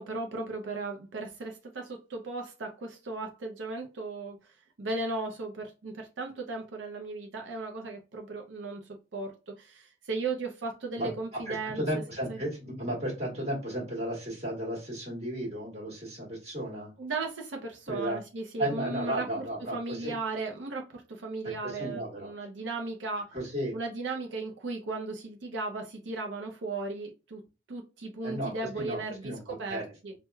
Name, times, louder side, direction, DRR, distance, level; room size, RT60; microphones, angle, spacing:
voice 1, 0.0-12.0 12.3-12.4 17.0-23.4 23.7-27.4 27.7-30.1, right 3 dB, 85° right, 0.5 m, -36 dB
voice 2, 11.0-16.9 17.9-18.2 18.6-20.1 21.6-22.3 23.3-23.7 28.2-29.9, right 1 dB, 35° right, 1.4 m, -34 dB
4.5 x 2.1 x 2.3 m
head